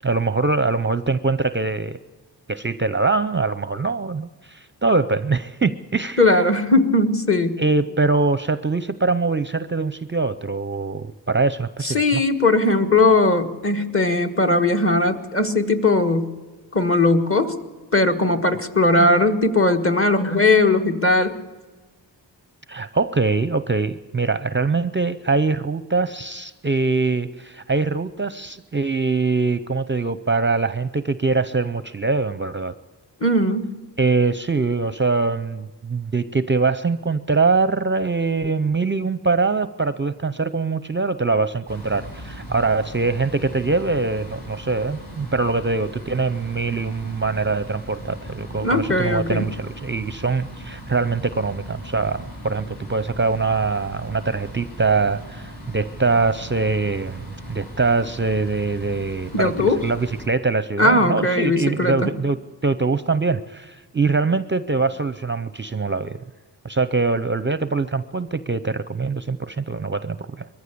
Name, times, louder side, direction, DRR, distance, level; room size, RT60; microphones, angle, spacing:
voice 1, 0.0-2.0 2.5-6.2 7.6-12.2 22.7-32.7 34.0-66.2 66.6-70.5, right 3 dB, 25° right, 14 dB, 0.5 m, -23 dB
voice 2, 6.2-7.6 11.8-16.3 16.7-17.5 17.9-21.4 33.2-33.7 48.6-49.5 59.3-59.8 60.8-62.1, left 2 dB, 30° left, 5 dB, 1.5 m, -19 dB
sound 1, 41.7-60.3, right 1 dB, 60° left, 7.7 m, -38 dB
22.0 x 14.5 x 8.5 m, 1.3 s
wide cardioid pair, 110°, 43 cm